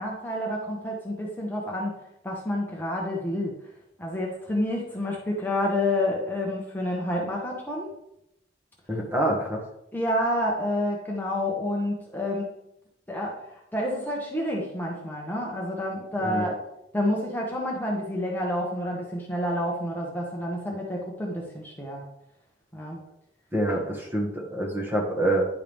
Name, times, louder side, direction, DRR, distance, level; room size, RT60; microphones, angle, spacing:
voice 1, 0.0-1.9 2.2-3.5 4.0-7.9 9.9-12.5 13.1-13.3 13.7-16.6 16.9-22.0 22.7-23.0, left 1 dB, 10° left, -3 dB, 1.0 m, -29 dB
voice 2, 8.9-9.6 16.2-16.5 23.5-25.5, right 1 dB, 10° right, -1 dB, 1.3 m, -26 dB
10.0 x 4.6 x 3.5 m, 0.82 s
head